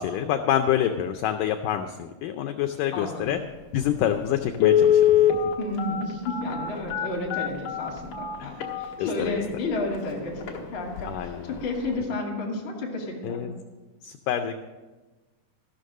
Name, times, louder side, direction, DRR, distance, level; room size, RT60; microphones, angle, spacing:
voice 1, 0.0-3.4 3.7-5.3 8.4-8.5 9.0-9.4 11.1-11.6 13.2-13.5 14.0-14.5, left 10 dB, 90° left, 7 dB, 1.8 m, -27 dB
voice 2, 2.9-3.4 5.6-13.4, left 2 dB, 35° left, -4 dB, 2.4 m, -32 dB
Telephone, 3.8-3.9 4.5-9.4 9.9-10.0 10.4-10.6 11.0-11.3 11.6-11.7, left 10 dB, 60° left, 1.9 m, -22 dB
14.5 x 6.5 x 6.4 m, 1.2 s
omnidirectional pair, 4.4 m